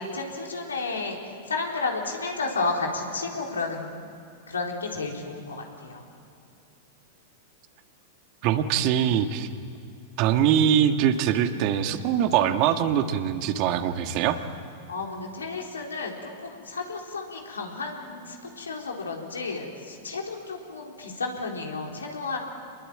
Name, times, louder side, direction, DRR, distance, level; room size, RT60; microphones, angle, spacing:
voice 1, 0.0-4.0 4.5-6.0 14.9-22.4, left 3 dB, 85° left, 0 dB, 4.0 m, -32 dB
voice 2, 8.4-9.5 10.2-14.4, right 9 dB, 50° right, 7 dB, 1.7 m, -23 dB
27.5 x 21.5 x 8.9 m, 2.5 s
hypercardioid pair, 100°, 0 cm